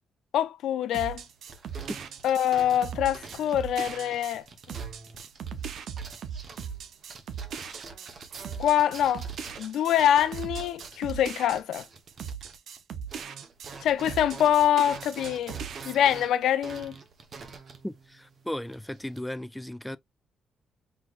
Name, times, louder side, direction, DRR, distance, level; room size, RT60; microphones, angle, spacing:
voice 1, 0.3-1.2 2.2-4.8 8.6-9.3 9.6-11.8 13.8-15.6 15.9-17.0, left 10 dB, 85° left, 0.5 m, -25 dB
sound 1, 0.9-13.8 14.1-15.9, right 7 dB, 70° right, 0.6 m, -39 dB
sound 2, 1.2-12.8 13.1-19.2, right 4 dB, 50° right, 1.0 m, -46 dB
voice 2, 17.8-20.0, left 1 dB, 5° left, 0.3 m, -36 dB
5.7 x 2.9 x 2.4 m
cardioid pair, 110°, 0 cm